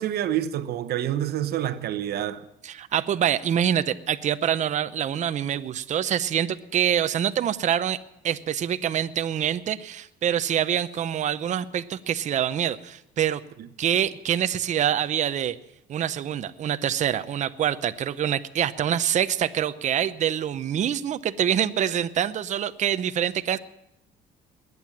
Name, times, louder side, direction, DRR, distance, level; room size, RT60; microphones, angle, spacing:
voice 1, 0.0-2.4 13.6-13.7, right 11 dB, 70° right, 1.0 m, -27 dB
voice 2, 2.6-8.0 8.2-13.4 13.8-15.6 15.9-23.6, right 9 dB, 45° right, 0.7 m, -25 dB
21.0 x 9.5 x 7.3 m
cardioid pair, 110°, 17 cm